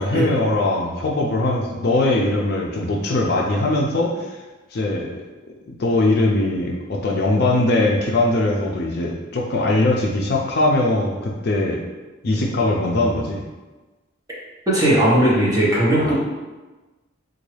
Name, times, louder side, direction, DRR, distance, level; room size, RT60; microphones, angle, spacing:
voice 1, 0.0-4.4 4.7-5.2 5.7-11.8 12.2-13.5 16.0-16.1, left 2 dB, 50° left, -1 dB, 0.4 m, -21 dB
voice 2, 14.7-16.1, right 1 dB, 15° right, -7 dB, 0.8 m, -17 dB
3.8 x 2.3 x 3.2 m, 1.2 s
head